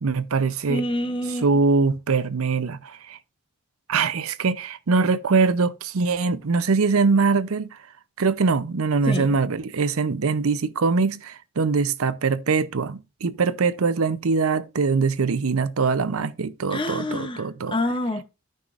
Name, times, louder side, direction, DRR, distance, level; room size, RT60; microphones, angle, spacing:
voice 1, 0.0-0.8 1.4-3.2 3.9-7.8 8.2-17.7, right 4 dB, 80° right, 0.6 m, -22 dB
voice 2, 0.7-1.5 9.1-9.3 16.7-18.2, left 1 dB, 25° left, 0.6 m, -27 dB
13.0 x 5.6 x 2.4 m
head